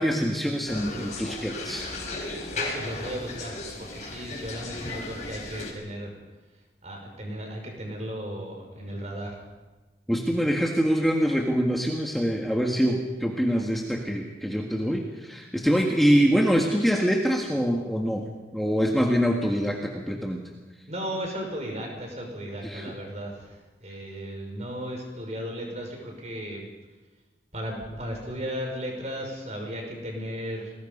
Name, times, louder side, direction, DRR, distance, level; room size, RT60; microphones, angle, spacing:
voice 1, 0.0-1.9 4.2-4.3 10.1-20.4 22.6-22.9, equal, ahead, 0 dB, 1.7 m, -25 dB
sound 1, 0.7-5.7, left 2 dB, 40° left, 4.8 m, -35 dB
voice 2, 2.5-3.5 3.8-6.1 6.8-9.4 20.9-26.6 27.5-30.7, equal, 40° right, 1 dB, 5.9 m, -35 dB
30.0 x 21.0 x 5.5 m, 1.2 s
head